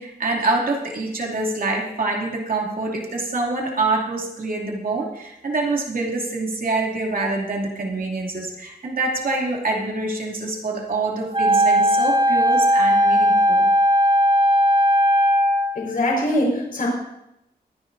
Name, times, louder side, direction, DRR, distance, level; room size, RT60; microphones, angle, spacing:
voice 1, 0.0-13.7, right 2 dB, 60° right, -1 dB, 2.6 m, -25 dB
Wind instrument woodwind instrument, 11.3-15.7, equal, 35° right, 5.4 m, -17 dB
voice 2, 15.7-16.9, left 1 dB, 60° left, -2 dB, 4.8 m, -22 dB
24.0 x 9.9 x 2.7 m, 0.86 s
wide cardioid pair, 95°, 17 cm